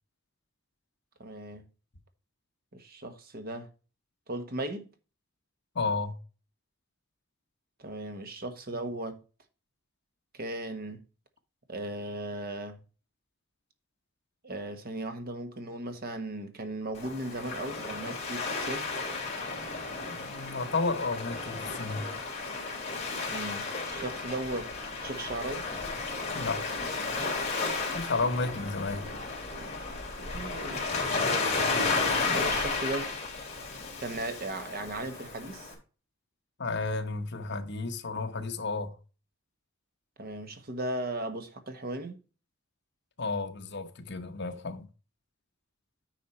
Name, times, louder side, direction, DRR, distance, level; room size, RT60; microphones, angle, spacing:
voice 1, 1.2-1.6 2.7-3.7 4.3-4.9 7.8-9.2 10.3-11.0 11.7-12.8 14.4-18.9 23.3-25.7 30.2-30.9 32.3-33.1 34.0-35.7 40.2-42.2, right 1 dB, 50° right, 1.3 m, -37 dB
voice 2, 5.7-6.2 20.0-22.1 26.3-26.8 27.9-29.1 31.4-31.5 36.6-38.9 43.2-44.9, left 3 dB, 60° left, 1.1 m, -32 dB
Waves surf, 16.9-35.7, left 3 dB, 35° left, 2.9 m, -33 dB
9.4 x 4.7 x 4.3 m
head